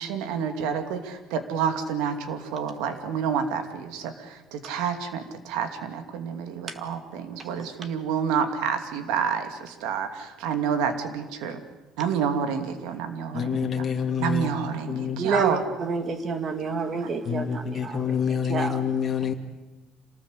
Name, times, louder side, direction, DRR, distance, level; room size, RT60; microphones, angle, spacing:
voice 1, 0.0-11.6 12.0-13.9 14.2-15.6 16.9-17.1 19.2-19.3, right 7 dB, 85° right, 8 dB, 2.6 m, -29 dB
voice 2, 13.3-14.5 14.9-15.3 17.3-19.3, left 7 dB, 30° left, 4 dB, 2.3 m, -27 dB
voice 3, 15.2-18.8, right 4 dB, 35° right, 9 dB, 1.9 m, -29 dB
27.0 x 19.0 x 8.2 m, 1.1 s
cardioid pair, 150°, 0 cm